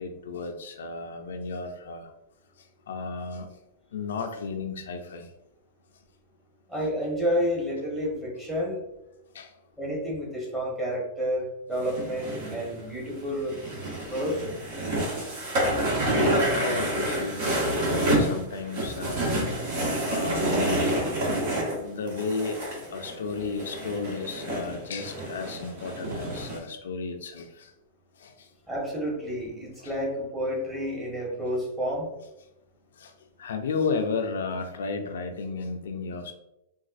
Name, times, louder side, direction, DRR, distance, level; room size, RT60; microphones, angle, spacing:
voice 1, 0.0-2.1 2.9-3.5 3.9-5.3 9.3-9.5 15.3-15.4 16.0-19.3 20.1-20.9 21.8-22.6 22.9-27.7 28.2-28.5 29.8-29.9 33.0-33.1 33.4-36.3, left 4 dB, 80° left, 5 dB, 0.4 m, -33 dB
voice 2, 6.7-8.8 9.8-13.6 14.1-14.5 28.7-32.1, equal, 15° right, -4 dB, 1.3 m, -30 dB
sound 1, 11.8-26.6, right 1 dB, 60° right, 1.4 m, -28 dB
4.0 x 2.3 x 2.5 m, 0.91 s
hypercardioid pair, 120°, 0 cm